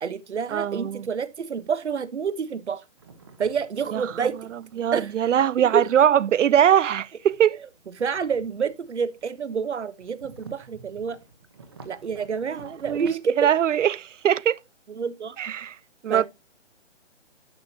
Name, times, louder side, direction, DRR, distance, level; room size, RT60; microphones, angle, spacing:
voice 1, 0.0-2.8 3.4-4.4 4.9-5.3 5.7-5.8 8.0-11.2 11.8-13.5 14.9-15.4 16.1-16.3, right 6 dB, 70° right, 1.2 m, -28 dB
voice 2, 0.5-1.1 3.9-4.0 4.8-7.6 12.8-14.6 15.4-15.7 16.0-16.3, right 10 dB, 90° right, 0.6 m, -21 dB
sound 1, 3.0-6.0 7.2-9.5 9.8-13.1, right 4 dB, 20° right, 1.0 m, -50 dB
11.0 x 7.1 x 2.8 m
hypercardioid pair, 175°, 36 cm